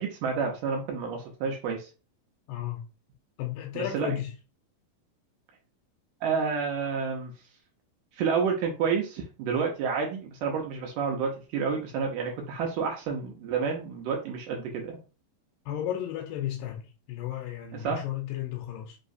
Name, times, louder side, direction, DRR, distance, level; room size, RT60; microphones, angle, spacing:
voice 1, 0.0-1.9 3.8-4.1 6.2-7.3 8.2-15.0 17.8-18.0, right 5 dB, 80° right, 2.3 m, -29 dB
voice 2, 2.5-2.8 3.4-4.3 15.7-19.0, left 11 dB, 85° left, 2.4 m, -34 dB
5.5 x 3.0 x 2.6 m
omnidirectional pair, 3.9 m